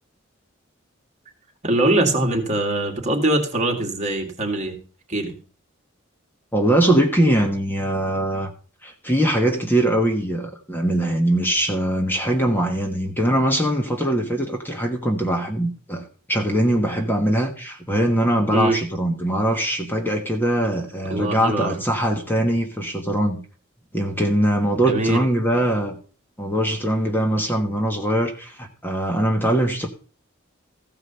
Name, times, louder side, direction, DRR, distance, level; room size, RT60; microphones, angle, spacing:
voice 1, 1.6-4.8 5.1-5.4 18.5-18.8 21.1-21.8 24.9-25.2, right 1 dB, 35° right, 2.0 m, -22 dB
voice 2, 6.5-8.5 8.8-23.4 23.9-26.0 26.4-29.9, right 1 dB, 10° left, 1.4 m, -22 dB
15.0 x 5.0 x 6.8 m
head